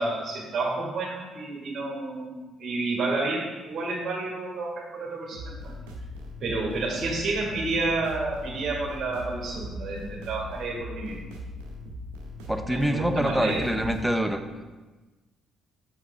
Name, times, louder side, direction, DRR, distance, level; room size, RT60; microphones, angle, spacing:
voice 1, 0.0-5.7 6.4-11.2 12.6-13.6, right 3 dB, 45° right, -3 dB, 1.8 m, -30 dB
sound 1, 5.3-14.0, left 1 dB, 70° right, 0.9 m, -39 dB
voice 2, 12.5-14.4, equal, 5° right, 7 dB, 0.7 m, -25 dB
7.3 x 5.9 x 3.4 m, 1.2 s
figure-of-eight pair, 45°, 0 cm